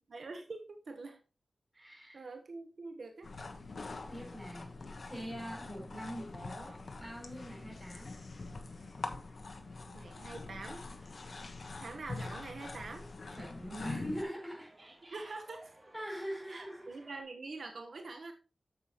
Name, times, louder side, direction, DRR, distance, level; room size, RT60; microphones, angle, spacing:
voice 1, 0.1-1.2 1.8-1.9 2.1-3.3 9.9-10.8 11.8-13.1 15.1-15.7 16.5-18.3, right 3 dB, 70° right, 5 dB, 1.2 m, -45 dB
voice 2, 1.7-2.2 4.1-8.1 13.3-14.7 15.9-17.0, equal, ahead, -2 dB, 4.6 m, -43 dB
sound 1, 3.2-14.2, left 3 dB, 60° left, 1.2 m, -44 dB
sound 2, 8.7-17.2, right 1 dB, 25° right, 2.5 m, -61 dB
9.1 x 7.4 x 3.0 m, 0.32 s
wide cardioid pair, 115°, 0 cm